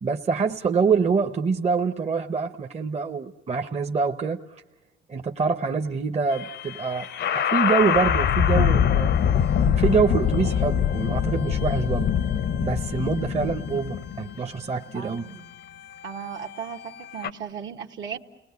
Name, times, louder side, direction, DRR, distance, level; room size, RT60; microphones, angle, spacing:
voice 1, 0.0-4.6 5.1-7.1 7.3-9.1 9.7-12.1 12.6-15.2, right 5 dB, 35° right, 5 dB, 0.9 m, -25 dB
sound 1, 6.3-17.3, left 8 dB, 60° left, 0.8 m, -24 dB
voice 2, 14.9-15.5 16.0-18.2, right 7 dB, 70° right, 1 dB, 1.4 m, -36 dB
30.0 x 19.5 x 9.6 m, 1.1 s
cardioid pair, 90°, 20 cm